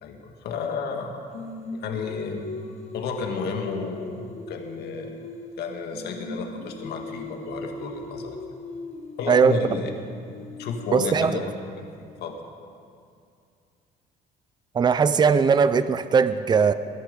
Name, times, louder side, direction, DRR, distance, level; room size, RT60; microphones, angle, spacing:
voice 1, 0.0-1.2 1.7-2.5 2.9-5.2 5.6-8.4 9.2-9.9 10.6-11.5 11.8-11.9 12.2-12.3, left 4 dB, 70° left, 3 dB, 1.9 m, -32 dB
Singing, 1.3-5.7 5.9-11.9, left 3 dB, 40° left, 1.5 m, -39 dB
voice 2, 9.3-9.6 10.9-11.4 14.7-16.7, right 6 dB, 25° right, 13 dB, 0.5 m, -19 dB
21.5 x 10.5 x 5.2 m, 2.4 s
cardioid pair, 110°, 17 cm